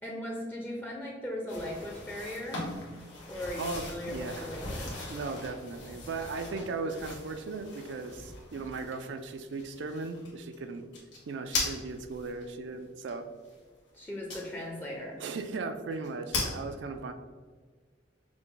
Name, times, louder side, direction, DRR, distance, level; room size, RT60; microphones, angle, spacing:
voice 1, 0.0-2.7 3.3-5.2 13.9-15.2, left 1 dB, 10° left, -1 dB, 0.5 m, -38 dB
sound 1, 1.5-12.4 13.1-13.2 14.3-14.8 15.2-15.3 15.5-15.6 15.9-16.5, left 2 dB, 75° left, 1.5 m, -39 dB
voice 2, 3.6-4.5 5.1-10.8 11.3-13.3 15.2-17.1, right 3 dB, 70° right, 7 dB, 0.4 m, -37 dB
5.8 x 2.2 x 3.8 m, 1.5 s
head